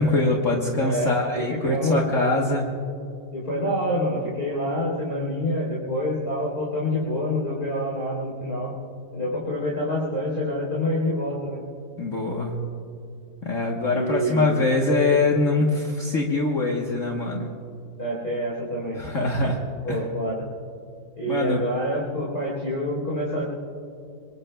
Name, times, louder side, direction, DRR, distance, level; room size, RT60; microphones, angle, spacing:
voice 1, 0.0-2.7 12.0-12.5 13.4-17.5 19.1-19.6 19.9-20.0 21.3-21.6, left 2 dB, 50° left, -1 dB, 1.5 m, -23 dB
voice 2, 0.8-2.1 3.3-8.7 9.1-11.6 13.9-14.7 18.0-19.1 19.8-20.4 21.2-23.4, equal, 30° left, -6 dB, 4.0 m, -27 dB
26.5 x 22.5 x 2.3 m, 2.5 s
omnidirectional pair, 2.0 m